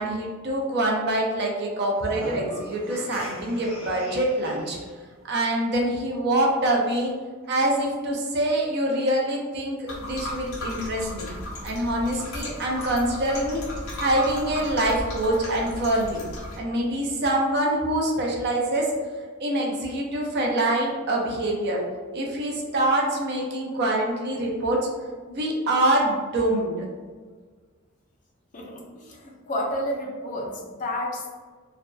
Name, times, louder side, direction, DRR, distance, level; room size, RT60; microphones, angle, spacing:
voice 1, 0.0-4.8 5.3-7.1 7.5-11.3 11.6-13.6 14.0-16.2 16.6-18.9 19.4-21.8 22.1-24.9 25.3-26.9, right 1 dB, 50° right, -1 dB, 0.5 m, -25 dB
sound 1, 1.9-4.9, left 1 dB, 5° right, 0.6 m, -40 dB
sound 2, 9.9-16.6, left 1 dB, 80° left, 0.6 m, -35 dB
voice 2, 28.5-31.3, left 1 dB, 40° left, -1 dB, 0.4 m, -31 dB
2.5 x 2.2 x 2.2 m, 1.5 s
head